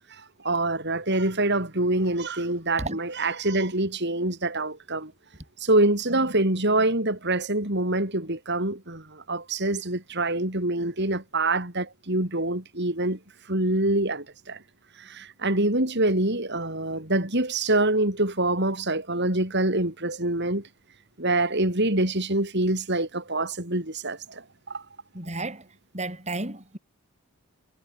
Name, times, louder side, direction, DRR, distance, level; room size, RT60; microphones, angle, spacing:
voice 1, 0.4-5.1 5.6-13.2 13.5-14.6 15.0-20.6 21.2-24.8, right 2 dB, 50° right, 5.6 m, -25 dB
voice 2, 25.1-25.7 25.9-26.8, right 2 dB, 30° right, 6.6 m, -32 dB
head